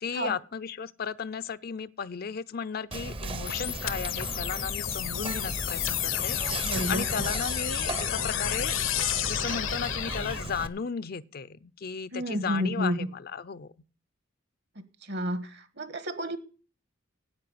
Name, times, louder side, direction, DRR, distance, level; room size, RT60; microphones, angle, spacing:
voice 1, 0.0-6.4 6.9-8.7 9.2-13.7, left 6 dB, 50° left, 0.5 m, -35 dB
Whispering, 2.9-10.7, right 2 dB, 25° right, 0.7 m, -36 dB
sound 1, 3.5-10.5, left 12 dB, 75° left, 0.9 m, -31 dB
voice 2, 6.6-7.3 12.1-13.1 15.1-16.4, equal, 60° right, 1.5 m, -31 dB
9.7 x 8.7 x 7.7 m
head